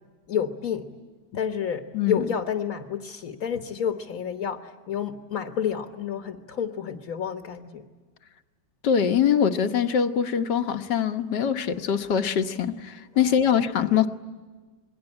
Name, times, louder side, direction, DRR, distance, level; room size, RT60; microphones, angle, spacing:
voice 1, 0.3-0.9 1.3-7.9 13.1-13.5 13.9-14.1, left 8 dB, 50° left, 6 dB, 1.7 m, -30 dB
voice 2, 1.9-2.3 8.8-14.1, left 8 dB, 65° left, 8 dB, 1.7 m, -23 dB
27.5 x 22.0 x 9.8 m, 1.3 s
omnidirectional pair, 2.0 m